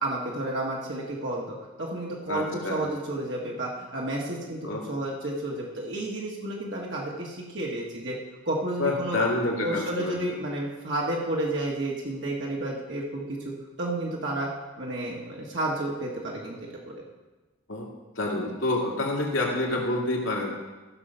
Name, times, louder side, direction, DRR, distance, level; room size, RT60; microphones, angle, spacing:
voice 1, 0.0-4.6 4.9-8.1 8.4-9.2 9.6-13.3 13.8-14.5 14.8-16.6 16.8-16.9, right 1 dB, 60° right, -3 dB, 1.6 m, -31 dB
voice 2, 2.3-2.9 4.6-4.8 8.8-10.4 17.7-17.9 18.2-20.5, left 2 dB, 75° left, -1 dB, 2.4 m, -28 dB
14.5 x 6.5 x 5.6 m, 1.2 s
head